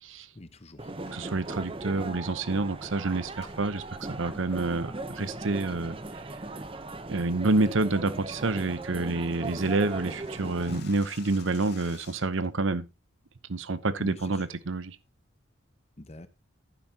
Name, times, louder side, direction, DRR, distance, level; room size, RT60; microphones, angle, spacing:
voice 1, 0.1-0.9 10.7-10.9 14.0-14.4 16.0-16.3, left 1 dB, 30° left, 1.0 m, -45 dB
sound 1, 0.8-10.8, right 2 dB, 25° right, 0.8 m, -38 dB
sound 2, 1.1-1.3 3.4-3.6 4.1-4.2 4.7-5.0 5.4-5.7 6.0-6.3 6.7-6.8 7.2-7.4 7.8-7.9 8.2-8.3 8.5-8.6 8.8-12.5, left 6 dB, 50° left, 2.2 m, -52 dB
voice 2, 1.1-6.2 7.1-12.9 13.5-15.0, right 3 dB, 70° right, 0.9 m, -28 dB
11.0 x 9.8 x 2.9 m
head